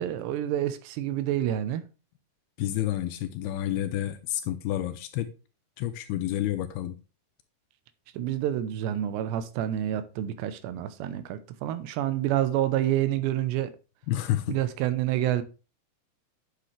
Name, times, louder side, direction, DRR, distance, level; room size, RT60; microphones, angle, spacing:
voice 1, 0.0-1.8 8.1-13.7 14.5-15.4, right 12 dB, 90° right, 3.0 m, -28 dB
voice 2, 2.6-5.3 5.8-7.0 14.1-14.6, left 13 dB, 80° left, 2.3 m, -29 dB
9.8 x 6.7 x 3.3 m
omnidirectional pair, 4.9 m